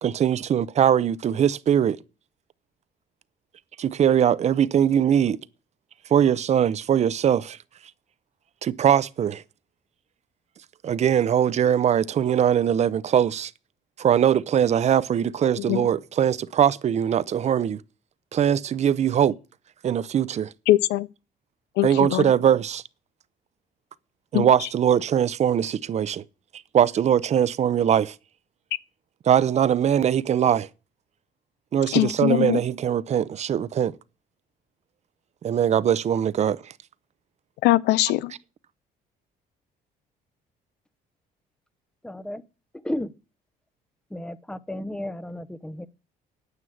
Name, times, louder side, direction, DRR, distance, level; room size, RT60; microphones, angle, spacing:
voice 1, 0.0-2.0 3.8-5.4 6.1-7.6 8.6-9.4 10.8-13.5 14.0-17.8 18.3-19.4 19.8-20.5 21.8-22.8 24.3-26.2 26.7-28.2 29.3-30.7 31.7-34.0 35.4-36.7, right 9 dB, 40° right, 0.7 m, -21 dB
voice 2, 15.6-15.9 20.7-21.1 21.8-22.2 24.3-24.5 31.9-32.6 37.6-38.3, left 16 dB, 80° left, 0.6 m, -21 dB
voice 3, 42.0-42.4 42.8-43.1 44.1-45.9, left 1 dB, 5° left, 0.7 m, -33 dB
9.6 x 9.1 x 7.8 m
cardioid pair, 110°, 17 cm